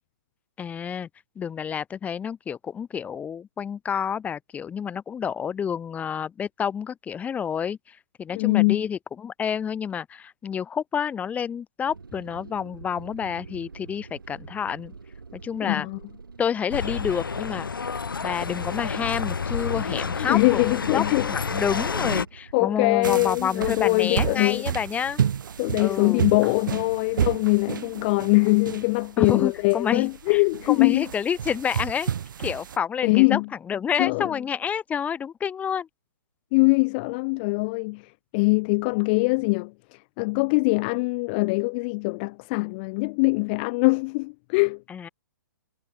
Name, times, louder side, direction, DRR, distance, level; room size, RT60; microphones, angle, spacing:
voice 1, 0.6-1.1 1.4-7.8 8.2-14.9 15.3-15.9 16.4-17.7 18.2-25.2 25.8-26.3 29.2-32.1 32.4-33.4 33.7-35.9 44.9-45.1, left 7 dB, 15° left, 1.1 m, -29 dB
voice 2, 8.3-8.9 15.6-16.0 20.2-21.3 22.5-24.6 25.6-31.1 33.0-33.5 34.0-34.3 36.5-38.0 38.3-39.7 40.2-44.8, left 28 dB, 30° left, 0.3 m, -22 dB
sound 1, 11.8-27.6, right 4 dB, 90° right, 3.9 m, -47 dB
sound 2, 16.7-22.3, left 5 dB, 85° left, 2.6 m, -29 dB
sound 3, 23.0-32.8, right 8 dB, 70° right, 0.6 m, -31 dB
hypercardioid pair, 135°, 11 cm